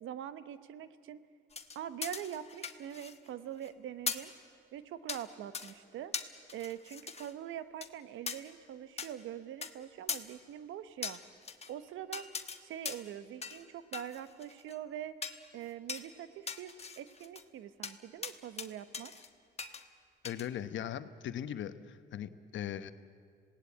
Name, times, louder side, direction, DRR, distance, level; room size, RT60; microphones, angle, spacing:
voice 1, 0.0-1.2 1.7-4.3 4.7-6.1 6.5-11.2 11.7-12.2 12.6-15.2 15.5-19.1, right 10 dB, 80° right, 13 dB, 1.0 m, -43 dB
sound 1, 1.5-3.3 3.6-3.7 4.1-4.3 5.1-5.2 5.5-5.7 6.1-7.3 7.8-7.9 8.3-8.4 9.0-9.1 9.6-9.7 10.1-10.2 11.0-11.7 12.1-12.6 12.9-13.1 13.4-13.6 13.9-14.8 15.2-15.4 15.9-16.1 16.5-17.4 17.8-18.0 18.2-18.7 18.9-19.3 19.6-19.8 20.3-20.5, left 5 dB, 30° left, 1.4 m, -40 dB
voice 2, 20.2-22.9, left 10 dB, 70° left, 12 dB, 1.1 m, -39 dB
26.5 x 18.5 x 8.6 m, 2.1 s
cardioid pair, 90°, 20 cm